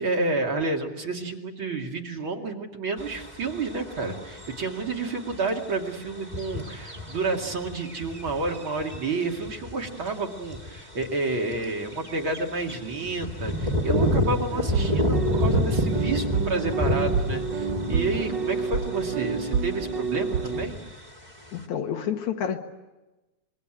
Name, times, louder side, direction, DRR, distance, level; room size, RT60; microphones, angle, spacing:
voice 1, 0.0-20.8, right 3 dB, 45° right, 1 dB, 2.8 m, -30 dB
sound 1, 3.0-19.1 19.4-19.5 19.8-21.1 21.6-21.7, left 1 dB, 15° right, 2.0 m, -29 dB
sound 2, 14.5-20.7, right 5 dB, 65° right, 1.1 m, -28 dB
voice 2, 21.5-22.6, left 8 dB, 75° left, 4 dB, 2.9 m, -29 dB
25.5 x 23.0 x 9.0 m, 1.1 s
omnidirectional pair, 3.4 m